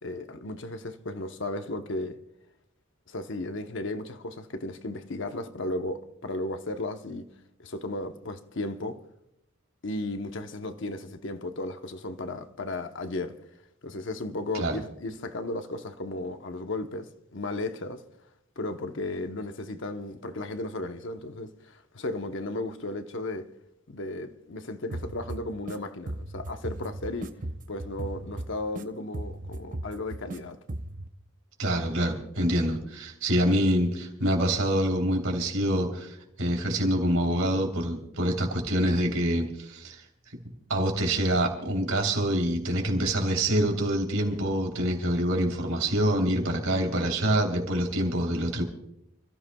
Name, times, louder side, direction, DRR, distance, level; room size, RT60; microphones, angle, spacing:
voice 1, 0.0-2.2 3.1-7.3 7.6-9.0 9.8-13.4 13.8-18.0 18.6-23.5 23.9-27.3 27.7-30.6 46.7-46.9, left 2 dB, 60° left, 0.9 m, -35 dB
sound 1, 24.9-25.8 26.1-28.8 29.1-30.4 30.7-31.1, right 1 dB, 40° right, 0.7 m, -37 dB
voice 2, 31.6-40.0 40.7-48.6, right 1 dB, 80° right, 3.3 m, -26 dB
29.5 x 14.5 x 2.3 m
head